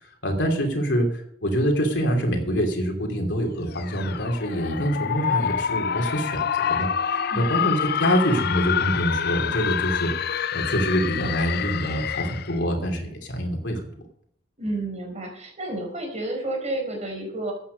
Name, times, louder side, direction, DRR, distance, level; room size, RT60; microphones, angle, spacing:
voice 1, 0.2-10.1 10.5-13.8, equal, 75° left, 2 dB, 3.0 m, -25 dB
sound 1, 3.7-12.6, left 8 dB, 60° left, 0.5 m, -27 dB
voice 2, 7.3-7.7 14.6-17.5, right 2 dB, 40° right, 2 dB, 4.7 m, -31 dB
14.5 x 8.8 x 5.3 m, 0.66 s
head